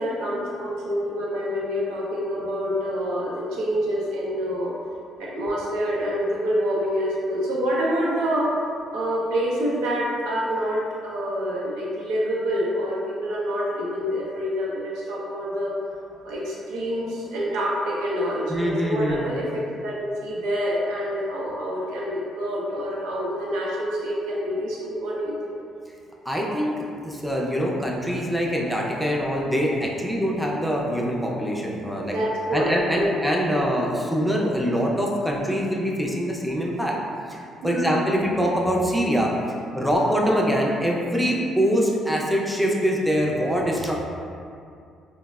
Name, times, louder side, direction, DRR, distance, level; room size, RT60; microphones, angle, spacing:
voice 1, 0.0-4.8 5.2-8.5 8.9-15.7 16.2-25.5 32.0-33.1 37.6-38.0, equal, 85° right, -5 dB, 0.5 m, -27 dB
voice 2, 18.5-19.4 26.3-32.2 32.5-36.9 37.3-39.3 39.7-44.0, equal, ahead, -2 dB, 0.4 m, -24 dB
3.3 x 2.0 x 2.2 m, 2.4 s
supercardioid pair, 70°, 0 cm